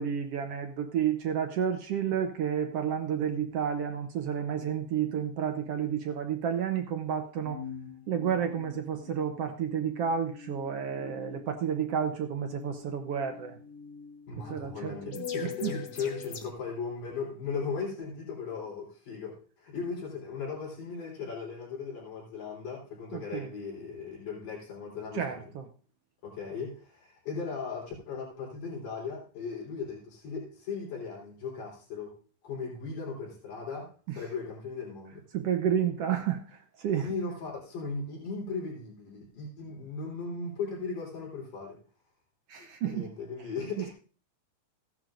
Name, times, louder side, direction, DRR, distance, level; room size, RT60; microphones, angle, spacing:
voice 1, 0.0-7.6 8.1-13.6 14.5-15.7 23.1-23.5 25.1-25.7 34.1-34.3 35.3-37.1 42.5-43.1 43.8-43.9, right 8 dB, 70° right, 6 dB, 1.5 m, -31 dB
sound 1, 7.4-16.5, left 7 dB, 50° left, 2.0 m, -44 dB
voice 2, 14.3-25.5 26.2-32.1 32.4-35.2 37.0-41.8 42.6-43.9, left 5 dB, 80° left, -3 dB, 5.4 m, -37 dB
15.5 x 10.5 x 2.5 m, 0.39 s
omnidirectional pair, 3.6 m